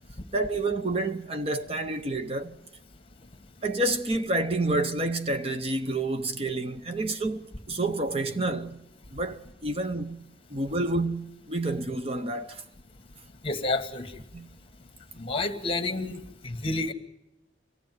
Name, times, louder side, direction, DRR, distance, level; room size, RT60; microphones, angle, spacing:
voice 1, 0.3-2.6 3.6-8.8 9.1-10.2 10.5-12.6 14.3-14.5, right 2 dB, 35° right, 0.9 m, -29 dB
voice 2, 13.4-14.1 15.2-16.9, left 2 dB, 30° left, 1.8 m, -30 dB
24.5 x 16.5 x 9.4 m
head